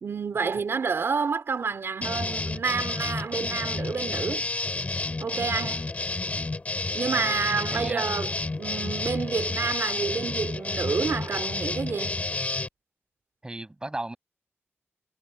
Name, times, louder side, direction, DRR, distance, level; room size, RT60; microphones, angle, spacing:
voice 1, 0.0-4.4 5.2-5.9 6.9-12.2, right 5 dB, 60° right, 3.8 m, -29 dB
sound 1, 2.0-12.7, left 3 dB, 30° left, 4.9 m, -30 dB
voice 2, 7.7-8.2 13.4-14.2, right 2 dB, 20° right, 7.1 m, -35 dB
wide cardioid pair, 95°, 5 cm